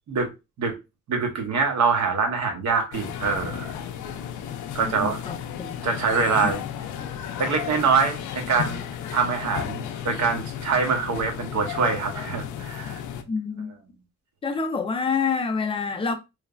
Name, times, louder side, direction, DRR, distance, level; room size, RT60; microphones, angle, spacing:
voice 1, 1.1-3.7 4.7-5.2 5.8-6.6 7.4-8.8 9.1-13.0, right 5 dB, 65° right, 0.9 m, -24 dB
sound 1, 2.9-13.2, left 9 dB, 80° left, 0.4 m, -34 dB
voice 2, 4.8-5.8 6.4-6.6 13.3-13.7 14.4-16.1, left 5 dB, 20° left, 0.4 m, -27 dB
3.2 x 2.0 x 2.3 m
cardioid pair, 125°, 30 cm